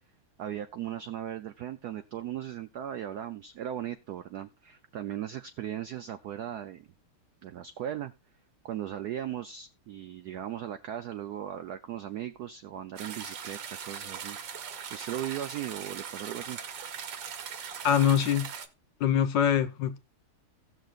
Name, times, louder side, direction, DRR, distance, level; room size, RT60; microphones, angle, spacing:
voice 1, 0.4-6.9 7.4-8.1 8.6-14.4 14.9-16.6, right 11 dB, 85° right, 0.8 m, -37 dB
sound 1, 13.0-18.7, right 7 dB, 65° right, 1.6 m, -40 dB
voice 2, 17.8-18.5 19.0-20.0, left 9 dB, 70° left, 1.2 m, -24 dB
17.0 x 6.5 x 2.4 m
omnidirectional pair, 2.4 m